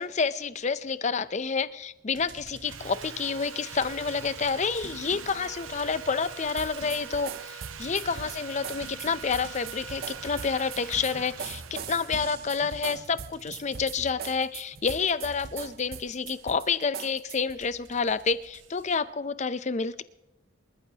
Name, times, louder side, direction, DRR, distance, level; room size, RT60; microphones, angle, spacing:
voice 1, 0.0-20.0, left 5 dB, 35° left, 15 dB, 0.5 m, -29 dB
sound 1, 2.1-16.9 17.6-19.0, right 3 dB, 60° right, 1.2 m, -48 dB
Sawing, 2.6-13.7, right 7 dB, 80° right, 0.9 m, -44 dB
sound 2, 6.6-17.6, right 7 dB, 45° right, 0.5 m, -41 dB
26.0 x 14.0 x 2.9 m, 0.93 s
head